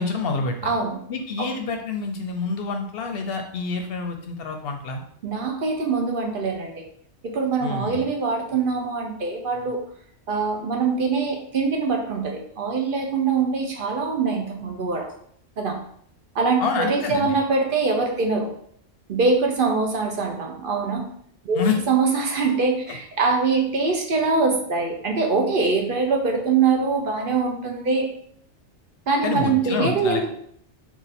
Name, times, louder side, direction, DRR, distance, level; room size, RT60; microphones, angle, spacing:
voice 1, 0.0-0.7 1.1-5.0 7.6-8.0 16.6-17.4 21.5-21.8 22.9-23.0 29.2-30.3, left 4 dB, 65° left, 4 dB, 0.7 m, -27 dB
voice 2, 0.6-1.0 1.4-1.5 5.2-6.8 7.2-9.8 10.3-15.1 15.6-15.8 16.3-18.5 19.1-21.1 21.4-21.6 21.9-28.1 29.1-30.3, right 4 dB, 55° right, 2 dB, 0.7 m, -23 dB
3.8 x 2.5 x 4.1 m, 0.65 s
omnidirectional pair, 1.2 m